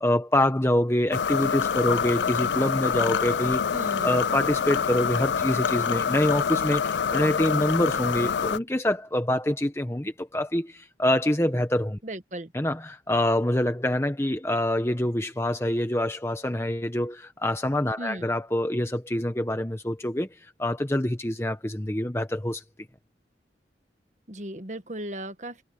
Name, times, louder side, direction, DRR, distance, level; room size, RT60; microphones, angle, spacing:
voice 1, 0.0-3.6 4.0-12.0 12.5-22.6, left 1 dB, 15° left, 1.0 m, -26 dB
sound 1, 1.1-8.6, left 7 dB, 85° left, 0.5 m, -26 dB
voice 2, 3.7-4.3 12.0-12.5 18.0-18.3 24.3-25.7, right 1 dB, 40° right, 1.3 m, -36 dB
head